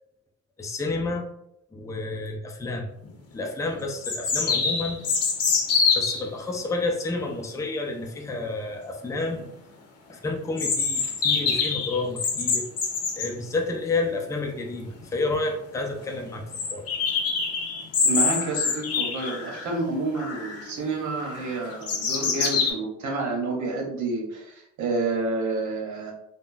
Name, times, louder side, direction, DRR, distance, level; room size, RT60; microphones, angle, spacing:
voice 1, 0.6-1.3 1.7-2.9 3.3-5.1 6.0-9.5 10.1-12.6 13.2-16.4 16.7-16.9, left 3 dB, 10° left, 1 dB, 0.4 m, -30 dB
sound 1, 3.0-3.1 4.0-6.2 10.6-13.3 15.0-15.1 15.3-15.4 15.8-15.9 16.5-19.7 20.2-20.7 21.2-22.7, left 5 dB, 55° left, 0.7 m, -25 dB
voice 2, 18.0-26.1, right 3 dB, 70° right, 0 dB, 0.9 m, -29 dB
3.5 x 2.1 x 2.5 m, 0.81 s
cardioid pair, 90°, 30 cm